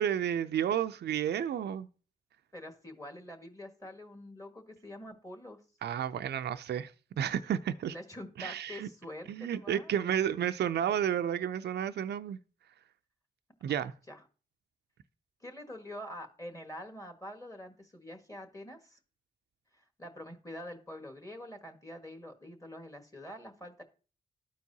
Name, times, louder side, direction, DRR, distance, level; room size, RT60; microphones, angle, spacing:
voice 1, 0.0-1.9 5.8-6.9 7.2-7.9 8.4-8.9 9.3-12.4 13.6-13.9, right 9 dB, 70° right, 0.4 m, -31 dB
voice 2, 2.5-5.6 7.9-9.9 14.1-14.2 15.4-19.0 19.8-23.8, left 1 dB, 20° left, 1.5 m, -46 dB
12.5 x 4.6 x 2.7 m
cardioid pair, 50°, 18 cm